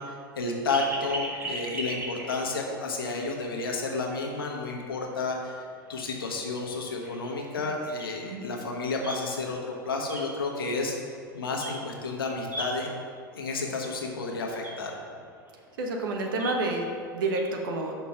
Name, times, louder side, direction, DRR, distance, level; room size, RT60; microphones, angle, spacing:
voice 1, 0.0-10.9 11.3-12.9 13.3-15.0, left 3 dB, 75° left, 1 dB, 1.2 m, -31 dB
sound 1, 0.7-2.9 3.3-3.4 3.8-3.9 5.2-5.3 5.8-5.9 6.3-6.4 6.7-9.6 10.0-11.2 11.5-12.0 12.3-13.2 13.7-13.8 14.0-14.1 14.4-17.4, right 1 dB, 15° right, 1.3 m, -38 dB
voice 2, 15.8-16.9 17.1-18.0, right 2 dB, 65° right, 2 dB, 1.1 m, -29 dB
5.7 x 4.5 x 5.7 m, 2.2 s
hypercardioid pair, 95°, 12 cm